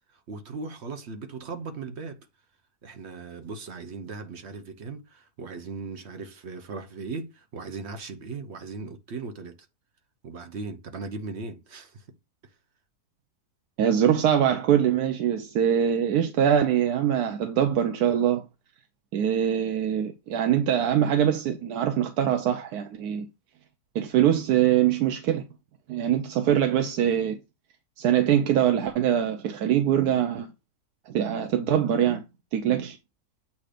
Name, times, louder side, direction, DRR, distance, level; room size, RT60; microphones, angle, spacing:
voice 1, 0.0-2.3 2.8-9.6 10.2-12.1 12.4-12.5, right 4 dB, 50° right, 0.9 m, -38 dB
voice 2, 13.8-18.4 19.1-23.3 23.9-25.4 25.9-27.4 28.0-30.5 31.1-32.2 32.5-33.0, right 9 dB, 75° right, 1.2 m, -23 dB
8.4 x 2.8 x 4.9 m
omnidirectional pair, 1.7 m